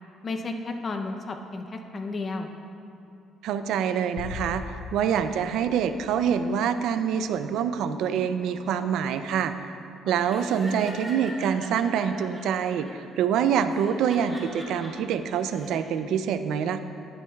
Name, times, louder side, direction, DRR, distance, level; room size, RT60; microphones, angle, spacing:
voice 1, 0.2-2.5 10.0-10.1, left 3 dB, 30° left, 5 dB, 0.6 m, -33 dB
voice 2, 3.4-9.5 10.1-16.8, right 8 dB, 75° right, 10 dB, 0.4 m, -26 dB
sound 1, 4.2-6.7, left 5 dB, 75° left, 0.7 m, -40 dB
Laughter, 10.3-12.9 13.7-14.9 15.4-15.8, equal, 15° right, 1.6 m, -42 dB
11.5 x 9.3 x 2.3 m, 2.6 s
cardioid pair, 140°, 0 cm